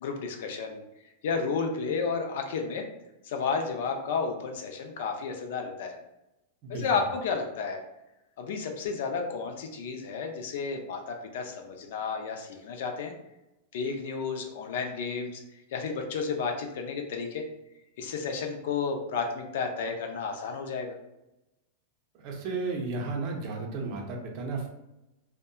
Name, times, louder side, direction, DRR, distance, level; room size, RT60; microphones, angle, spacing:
voice 1, 0.0-0.8 1.2-2.8 3.2-6.0 6.7-7.8 8.4-13.1 13.7-15.4 15.7-17.4 18.0-20.9, left 5 dB, 65° left, 4 dB, 0.4 m, -32 dB
voice 2, 6.6-7.0 22.2-24.7, right 3 dB, 40° right, 1 dB, 0.5 m, -33 dB
2.7 x 2.1 x 2.2 m, 0.93 s
supercardioid pair, 150°, 0 cm